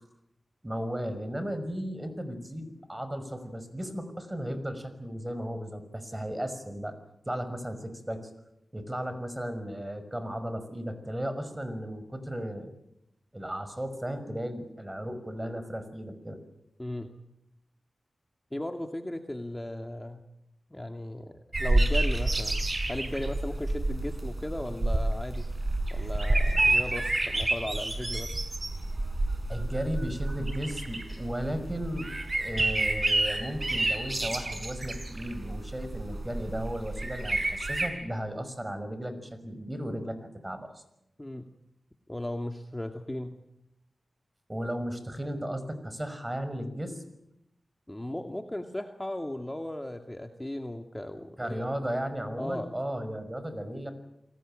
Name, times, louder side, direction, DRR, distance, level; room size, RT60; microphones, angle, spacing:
voice 1, 0.6-6.9 7.2-8.3 8.7-12.7 13.3-16.4 29.5-32.1 32.4-40.2 40.4-40.8 44.5-47.0 51.4-53.9, equal, 20° right, 10 dB, 5.8 m, -35 dB
voice 2, 16.8-17.2 18.5-20.2 20.7-25.5 25.9-28.3 41.2-41.5 42.1-43.4 47.9-51.7 52.4-52.7, left 1 dB, 15° left, 5 dB, 2.3 m, -36 dB
sound 1, 21.5-37.9, right 2 dB, 40° right, 5.5 m, -29 dB
28.5 x 20.0 x 9.0 m, 0.83 s
cardioid pair, 55°, 0 cm